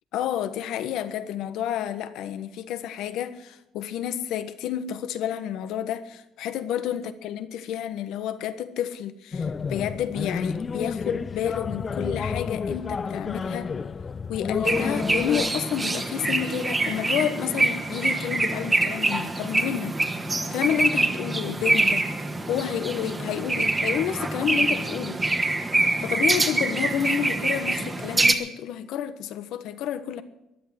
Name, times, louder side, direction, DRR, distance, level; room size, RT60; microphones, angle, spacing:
voice 1, 0.1-13.7 14.3-20.0 20.3-22.1 22.5-25.2 26.0-30.2, left 10 dB, 75° left, 11 dB, 1.3 m, -30 dB
sound 1, 9.3-15.5, left 5 dB, 35° left, 0.6 m, -30 dB
sound 2, 14.6-28.3, right 2 dB, 20° right, 1.8 m, -25 dB
15.0 x 10.0 x 7.6 m, 0.90 s
supercardioid pair, 85°, 0 cm